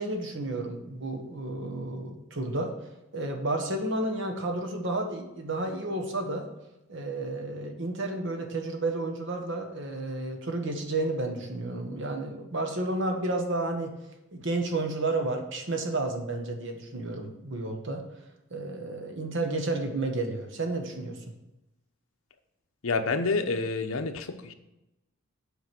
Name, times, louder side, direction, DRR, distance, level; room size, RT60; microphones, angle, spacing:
voice 1, 0.0-2.7 3.1-6.5 6.9-13.9 14.3-18.0 18.5-21.2, right 2 dB, 60° right, 4 dB, 1.4 m, -31 dB
voice 2, 22.8-24.5, left 3 dB, 80° left, 7 dB, 0.8 m, -28 dB
8.3 x 5.1 x 6.1 m, 0.93 s
head